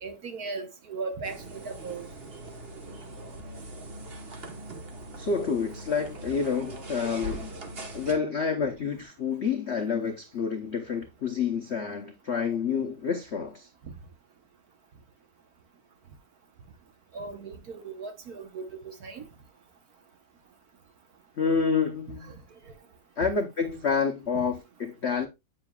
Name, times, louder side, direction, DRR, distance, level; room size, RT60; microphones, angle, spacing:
voice 1, 0.0-2.1 17.1-19.3 22.1-22.4 24.3-24.4, right 4 dB, 55° right, 1.3 m, -38 dB
sound 1, 1.2-8.1, right 1 dB, 35° right, 1.0 m, -41 dB
voice 2, 5.2-7.5 7.9-13.7 21.4-22.4 23.2-25.3, left 5 dB, 60° left, 0.7 m, -28 dB
8.7 x 7.3 x 2.3 m
omnidirectional pair, 2.2 m